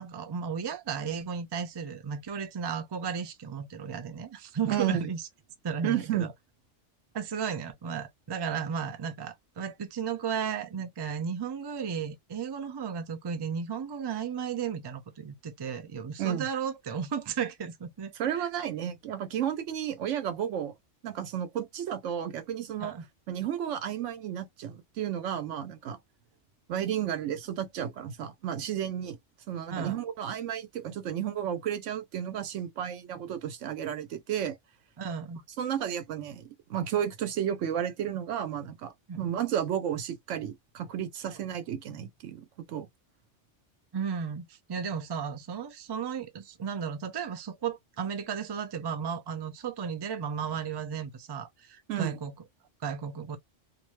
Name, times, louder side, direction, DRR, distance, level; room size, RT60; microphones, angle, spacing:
voice 1, 0.0-5.2 5.6-6.3 7.1-18.5 22.8-23.1 29.7-30.0 35.0-35.4 39.1-39.3 41.3-41.4 43.9-52.3 52.8-53.4, right 7 dB, 40° right, 0.4 m, -34 dB
voice 2, 4.7-5.1 5.8-6.3 16.2-16.5 18.2-20.7 21.0-22.9 23.3-26.0 26.7-29.2 29.5-34.6 35.6-42.9 51.9-52.2, right 9 dB, 90° right, 1.0 m, -32 dB
2.6 x 2.1 x 3.0 m
omnidirectional pair, 1.2 m